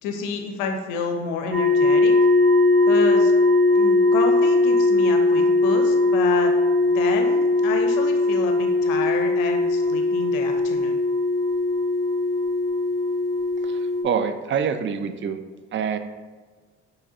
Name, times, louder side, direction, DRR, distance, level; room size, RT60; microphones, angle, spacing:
voice 1, 0.0-2.1 2.9-3.3 3.7-6.5 6.8-11.0, left 4 dB, 85° left, 4 dB, 0.5 m, -30 dB
sound 1, 1.5-14.0, left 2 dB, ahead, 1.3 m, -19 dB
voice 2, 13.6-15.4 15.7-16.0, right 7 dB, 40° right, 9 dB, 0.4 m, -26 dB
4.6 x 3.1 x 2.7 m, 1.4 s
hypercardioid pair, 55°, 32 cm